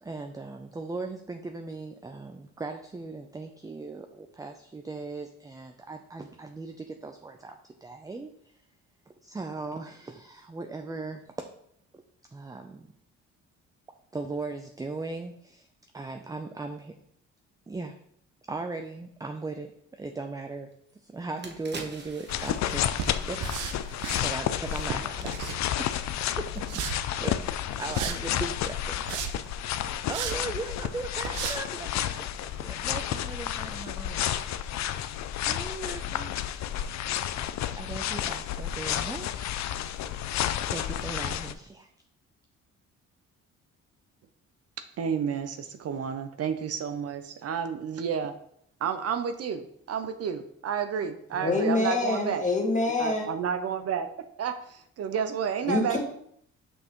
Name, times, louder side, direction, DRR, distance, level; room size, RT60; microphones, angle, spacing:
voice 1, 0.0-8.6 9.1-11.5 11.9-12.0 12.3-12.9 14.1-15.7 15.9-16.9 17.7-18.0 18.5-20.7 21.0-23.4 24.2-25.3 25.8-25.9 26.4-26.8 27.2-27.4 27.7-34.2 35.5-39.7 40.7-41.9, right 3 dB, 10° right, 5 dB, 0.4 m, -38 dB
sound 1, 20.7-20.8 21.2-24.5 24.8-25.0, right 3 dB, 35° right, 1.1 m, -45 dB
sound 2, 22.3-41.5, left 11 dB, 65° left, 0.5 m, -31 dB
sound 3, 23.0-24.2 24.6-25.9 26.6-27.0 27.9-28.2 28.8-29.5 30.1-30.4 30.8-30.9 31.2-31.6, right 7 dB, 90° right, 0.7 m, -34 dB
voice 2, 45.0-48.3 48.8-52.4 53.0-54.1 54.4-56.0, right 7 dB, 55° right, 8 dB, 0.6 m, -31 dB
voice 3, 51.3-53.3 55.7-56.0, left 3 dB, 25° left, -1 dB, 1.8 m, -26 dB
6.2 x 5.3 x 3.0 m, 0.69 s
cardioid pair, 90°, 30 cm